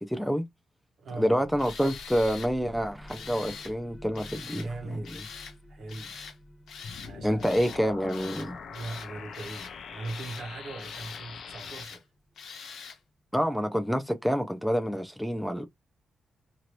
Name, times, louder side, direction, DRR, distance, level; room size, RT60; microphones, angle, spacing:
voice 1, 0.1-0.5 1.2-5.2 7.2-8.6 13.3-15.7, equal, ahead, 0.3 m, -28 dB
voice 2, 1.0-1.5 4.2-5.2 5.7-6.2 7.0-7.6 8.7-12.0 14.9-15.0, right 2 dB, 60° right, 0.9 m, -40 dB
sound 1, 1.4-12.8, left 1 dB, 20° left, 0.9 m, -51 dB
Tools, 1.6-2.5 3.1-3.7 4.2-4.7 5.0-5.6 5.9-6.4 6.7-7.1 7.4-7.8 8.1-8.5 8.7-9.7 10.0-10.5 10.8-11.2 11.6-12.0 12.4-13.0, left 6 dB, 75° left, 0.9 m, -44 dB
sound 2, 6.8-11.8, left 6 dB, 60° left, 0.6 m, -43 dB
3.0 x 2.6 x 2.9 m
wide cardioid pair, 155°, 0 cm